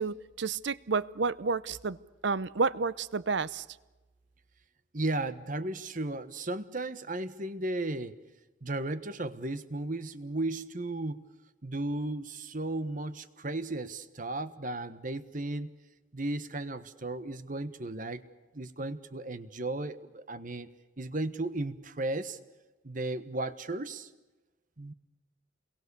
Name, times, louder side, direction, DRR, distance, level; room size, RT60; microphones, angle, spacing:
voice 1, 0.0-2.0 2.2-3.6, right 4 dB, 65° right, 0.8 m, -30 dB
voice 2, 4.9-8.2 8.6-11.2 11.6-15.7 16.1-18.2 18.5-20.7 21.0-22.4 22.8-24.1 24.8-24.9, right 2 dB, 45° right, 1.3 m, -35 dB
29.0 x 22.5 x 7.0 m
head